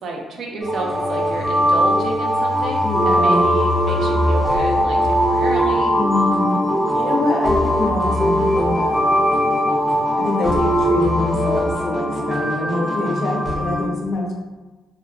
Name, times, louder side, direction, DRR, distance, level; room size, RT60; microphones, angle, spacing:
voice 1, 0.0-6.0, right 2 dB, 65° right, 0 dB, 0.4 m, -30 dB
sound 1, 0.6-13.8, equal, 10° right, 0.7 m, -19 dB
voice 2, 2.8-3.5 5.9-6.6 6.9-9.3 10.2-14.3, left 2 dB, 60° left, 1 dB, 0.5 m, -24 dB
2.7 x 2.0 x 2.3 m, 1.2 s
cardioid pair, 90°, 0 cm